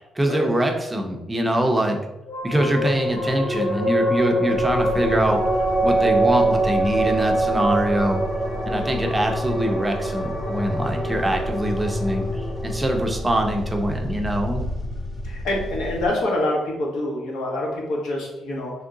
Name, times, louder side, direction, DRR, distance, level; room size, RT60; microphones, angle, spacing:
voice 1, 0.2-2.0 2.4-5.4 5.8-8.2 8.7-14.6, right 1 dB, 10° right, 3 dB, 0.4 m, -23 dB
sound 1, 2.3-15.1, right 1 dB, 45° left, 1.2 m, -25 dB
sound 2, 4.5-16.1, equal, 20° left, 1.0 m, -33 dB
voice 2, 15.2-18.7, left 1 dB, 90° left, -1 dB, 1.2 m, -26 dB
3.6 x 3.0 x 3.8 m, 0.92 s
cardioid pair, 165°, 0 cm